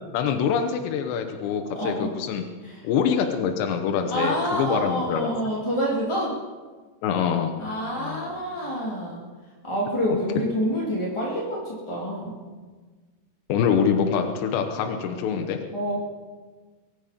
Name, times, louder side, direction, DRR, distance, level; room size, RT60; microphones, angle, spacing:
voice 1, 0.1-2.4 2.8-5.3 7.0-7.5 8.0-8.3 13.5-15.6, left 7 dB, 75° left, 5 dB, 3.1 m, -25 dB
voice 2, 1.7-2.1 2.6-2.8 4.1-6.4 7.6-9.2 9.6-12.4 15.7-15.9, equal, 10° left, -6 dB, 1.5 m, -27 dB
23.5 x 10.0 x 5.2 m, 1.4 s
omnidirectional pair, 5.3 m